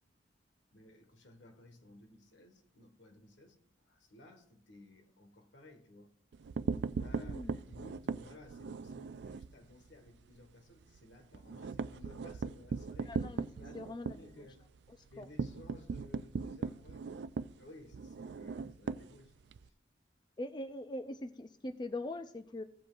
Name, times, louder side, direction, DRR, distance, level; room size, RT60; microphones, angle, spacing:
voice 1, 0.7-3.6 3.8-6.1 6.9-13.1 13.6-14.6 15.0-17.1 17.6-19.3 19.6-19.7, left 1 dB, 80° left, 1.4 m, -57 dB
sound 1, 6.3-9.5 9.9-10.1 10.4-10.5 10.8-19.7, right 4 dB, 65° right, 0.3 m, -39 dB
voice 2, 7.1-7.5 13.1-14.3 15.2-15.3 20.4-22.6, left 1 dB, 25° left, 0.4 m, -42 dB
16.0 x 7.7 x 2.5 m
head